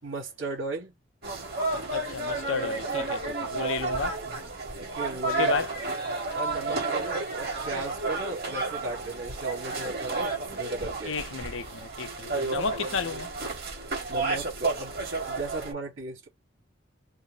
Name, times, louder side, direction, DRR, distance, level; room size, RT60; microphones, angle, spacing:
voice 1, 0.0-0.9 4.8-5.6 6.3-11.1 14.1-15.0 15.3-16.3, right 2 dB, 70° right, 2.8 m, -36 dB
sound 1, 1.2-15.7, right 3 dB, 50° right, 2.8 m, -31 dB
voice 2, 1.9-4.2 5.4-5.7 11.1-13.3, left 5 dB, 75° left, 0.8 m, -32 dB
5.5 x 2.2 x 3.4 m
head